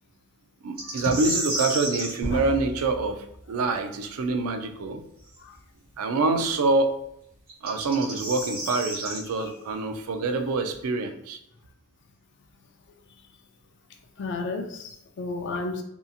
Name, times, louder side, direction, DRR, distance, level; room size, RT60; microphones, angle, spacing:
voice 1, 0.6-5.0 6.0-6.9 7.6-11.4, right 3 dB, 80° right, 7 dB, 0.4 m, -26 dB
sound 1, 0.8-2.1 5.3-5.4 7.5-9.2, right 1 dB, 45° right, 0.9 m, -31 dB
sound 2, 2.2-4.2, equal, 15° right, 0.6 m, -36 dB
voice 2, 14.2-15.8, left 3 dB, 55° left, 5 dB, 0.4 m, -33 dB
2.7 x 2.6 x 2.4 m, 0.76 s
head